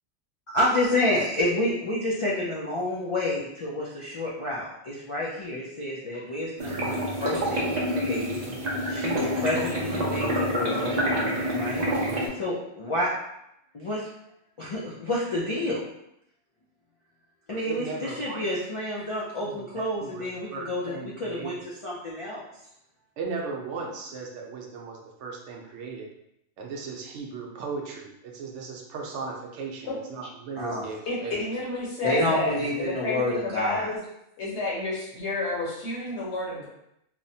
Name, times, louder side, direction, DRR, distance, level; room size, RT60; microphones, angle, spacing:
voice 1, 0.5-6.9 7.2-8.4 8.9-10.9 11.5-11.9 12.3-13.1 13.7-14.1 14.6-15.8 17.5-22.4 30.6-30.8 32.0-33.9, left 1 dB, 60° left, -6 dB, 0.3 m, -29 dB
sound 1, 6.6-12.3, equal, 45° right, 0.6 m, -27 dB
voice 2, 17.5-18.4 19.4-20.2 20.5-21.5 23.2-26.1 26.6-31.4 32.2-32.3 32.6-32.7, right 4 dB, 85° right, 1 dB, 0.9 m, -37 dB
voice 3, 31.1-34.0 34.4-36.7, left 2 dB, 75° left, -4 dB, 1.1 m, -30 dB
2.9 x 2.1 x 2.7 m, 0.80 s
omnidirectional pair, 1.2 m